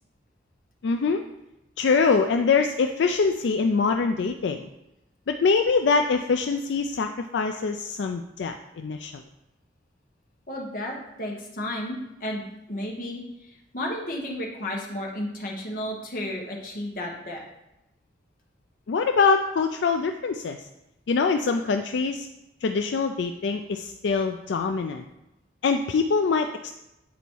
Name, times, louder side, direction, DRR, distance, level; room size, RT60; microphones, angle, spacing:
voice 1, 0.8-1.2 1.8-4.7 5.3-9.2 18.9-20.6 21.1-22.3 22.6-25.0 25.6-26.7, left 4 dB, 75° left, 6 dB, 0.4 m, -24 dB
voice 2, 10.5-17.4, left 1 dB, 45° left, 0 dB, 1.2 m, -33 dB
8.4 x 4.1 x 4.6 m, 0.91 s
head